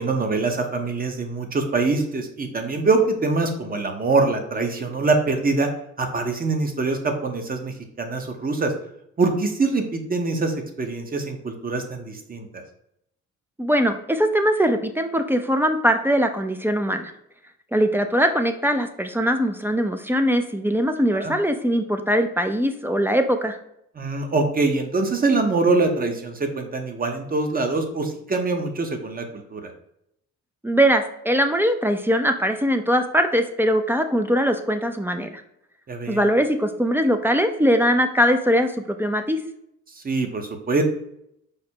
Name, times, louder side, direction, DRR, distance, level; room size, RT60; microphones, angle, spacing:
voice 1, 0.0-5.7 6.0-8.7 9.2-12.6 21.1-21.3 24.0-29.7 35.9-36.3 40.0-40.8, right 3 dB, 30° right, 5 dB, 0.8 m, -24 dB
voice 2, 13.6-17.1 17.7-23.6 30.6-35.3 36.1-39.4, equal, 5° right, 7 dB, 0.4 m, -21 dB
5.0 x 2.1 x 4.3 m, 0.76 s
cardioid pair, 90°, 30 cm